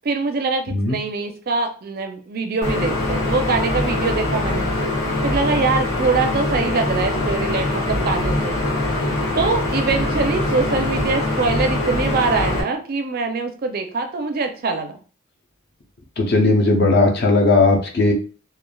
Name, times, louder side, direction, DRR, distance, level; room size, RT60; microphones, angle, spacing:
voice 1, 0.0-4.7 5.2-8.6 9.4-15.0, right 4 dB, 45° right, 6 dB, 0.4 m, -23 dB
sound 1, 2.6-12.6, left 1 dB, 75° left, 1.3 m, -23 dB
voice 2, 16.2-18.1, left 2 dB, 50° left, 2 dB, 0.6 m, -16 dB
3.2 x 2.3 x 2.2 m, 0.38 s
head